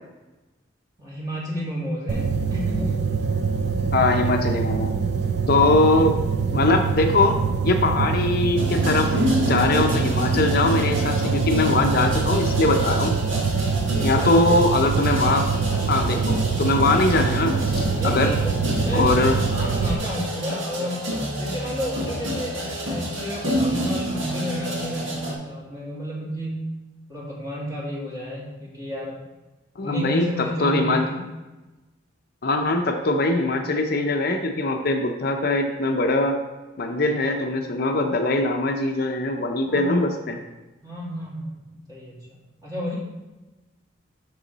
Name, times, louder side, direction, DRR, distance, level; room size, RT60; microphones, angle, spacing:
voice 1, 1.0-3.0 14.0-14.6 17.9-21.0 21.4-26.7 27.1-29.2 29.8-31.2 39.7-40.2 40.8-43.0, equal, 20° right, -6 dB, 2.3 m, -32 dB
sound 1, 2.1-19.9, right 5 dB, 55° right, 0.5 m, -24 dB
voice 2, 3.9-4.9 5.5-6.1 6.5-13.1 14.0-15.5 15.9-18.3 18.9-19.4 29.8-31.0 32.4-36.4 36.8-40.4, left 2 dB, 50° left, 4 dB, 0.6 m, -22 dB
sound 2, 8.6-25.3, equal, 75° right, 1.7 m, -29 dB
6.8 x 6.2 x 4.0 m, 1.1 s
head